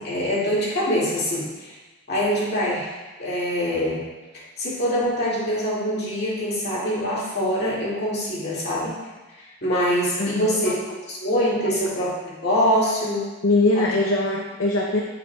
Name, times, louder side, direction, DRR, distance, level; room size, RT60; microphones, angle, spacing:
voice 1, 0.0-1.7 2.1-2.9 3.2-4.0 4.6-9.0 9.4-10.7 11.1-13.3 13.7-13.9, equal, 50° left, -7 dB, 2.3 m, -24 dB
voice 2, 10.2-10.8 13.4-15.0, left 2 dB, 65° left, 0 dB, 0.6 m, -22 dB
9.5 x 6.0 x 2.3 m, 1.2 s
head